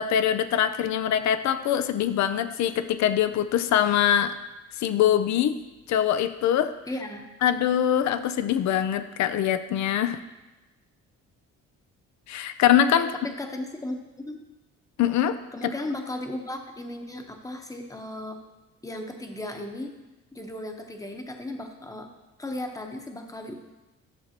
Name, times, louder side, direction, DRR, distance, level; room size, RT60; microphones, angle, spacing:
voice 1, 0.0-4.4 4.8-5.6 5.9-6.7 7.4-10.2 12.3-13.1 15.0-15.7, left 10 dB, 65° left, 11 dB, 0.6 m, -23 dB
voice 2, 6.9-7.3 12.9-14.4 15.5-18.4 18.8-20.0 20.3-22.1 22.4-23.5, left 1 dB, 10° left, 4 dB, 1.0 m, -35 dB
12.0 x 6.7 x 2.9 m, 1.1 s
cardioid pair, 90°, 30 cm